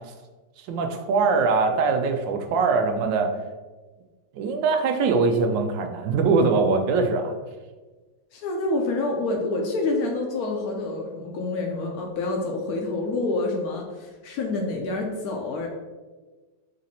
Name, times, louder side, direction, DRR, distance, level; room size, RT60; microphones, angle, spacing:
voice 1, 0.6-3.3 4.3-7.3, right 4 dB, 90° right, 5 dB, 1.3 m, -22 dB
voice 2, 8.3-15.7, left 2 dB, 70° left, 1 dB, 0.9 m, -27 dB
4.1 x 2.6 x 4.1 m, 1.3 s
omnidirectional pair, 1.9 m